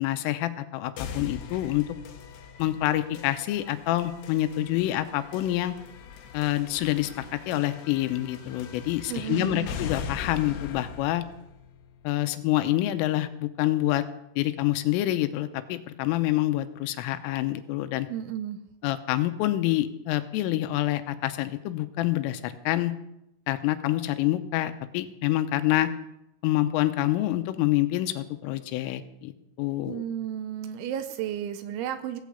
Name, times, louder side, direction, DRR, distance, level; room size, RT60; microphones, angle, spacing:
voice 1, 0.0-1.9 2.6-5.8 6.3-11.3 12.0-14.0 14.4-18.1 18.8-22.9 23.5-25.9 26.4-30.0, left 15 dB, 85° left, 10 dB, 3.3 m, -27 dB
sound 1, 1.0-12.9, left 6 dB, 70° left, 2.8 m, -41 dB
voice 2, 9.1-9.8 18.1-18.6 29.9-32.2, right 10 dB, 80° right, 10 dB, 2.9 m, -33 dB
16.5 x 8.4 x 7.9 m, 0.83 s
omnidirectional pair, 5.9 m